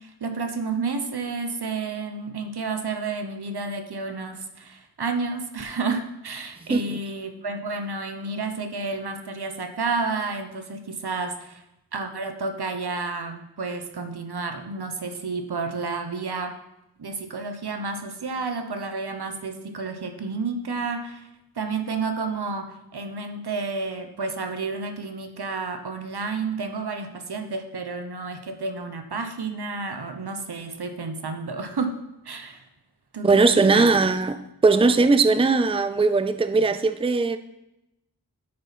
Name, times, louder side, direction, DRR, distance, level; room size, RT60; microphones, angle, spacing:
voice 1, 0.0-11.6 11.9-16.5 17.0-21.3 21.5-32.0 32.2-32.6 33.1-34.1, right 4 dB, 80° right, 1.0 m, -31 dB
voice 2, 33.2-37.4, right 3 dB, 15° right, 0.4 m, -19 dB
9.9 x 6.5 x 4.2 m
wide cardioid pair, 70°, 38 cm